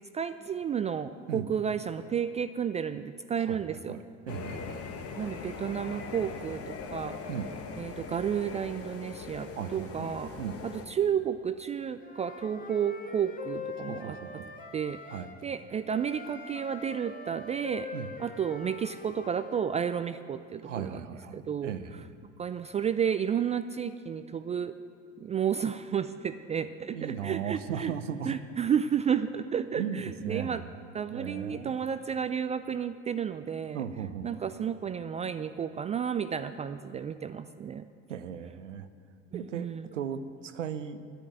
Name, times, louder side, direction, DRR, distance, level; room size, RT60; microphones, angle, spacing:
voice 1, 0.1-4.0 5.2-7.2 7.8-10.3 10.6-14.4 14.7-15.0 15.4-17.9 18.2-21.7 22.4-24.7 25.2-27.9 28.3-30.6 30.9-33.8 34.2-37.9 39.3-39.9, right 8 dB, 20° right, 11 dB, 0.3 m, -32 dB
voice 2, 3.4-4.9 7.3-7.5 9.5-10.6 13.8-14.5 15.1-15.3 17.9-18.1 20.6-22.1 26.9-28.4 29.8-30.7 31.1-31.7 33.7-34.3 38.1-38.9 39.3-41.0, right 8 dB, 90° right, 11 dB, 0.6 m, -37 dB
sound 1, 4.3-10.9, left 5 dB, 40° left, 1.2 m, -41 dB
Wind instrument woodwind instrument, 12.0-15.4 15.9-19.6, left 4 dB, 25° left, 1.7 m, -43 dB
10.5 x 10.0 x 9.2 m, 2.3 s
hypercardioid pair, 70°, 36 cm